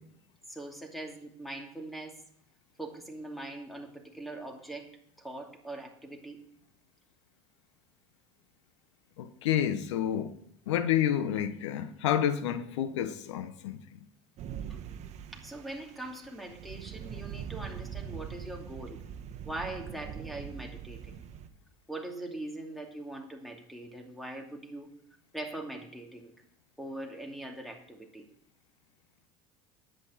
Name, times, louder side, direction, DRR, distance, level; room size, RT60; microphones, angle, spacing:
voice 1, 0.5-2.2 2.8-4.9 5.2-6.4 14.7-14.8 15.3-19.0 19.4-21.1 21.9-24.9 25.3-26.3 26.8-28.3, right 1 dB, ahead, 2.6 m, -41 dB
voice 2, 9.2-10.3 10.7-13.8, left 10 dB, 90° left, 1.0 m, -29 dB
sound 1, 14.4-21.5, right 8 dB, 50° right, 1.2 m, -42 dB
10.5 x 8.9 x 5.7 m
supercardioid pair, 100°, 15 cm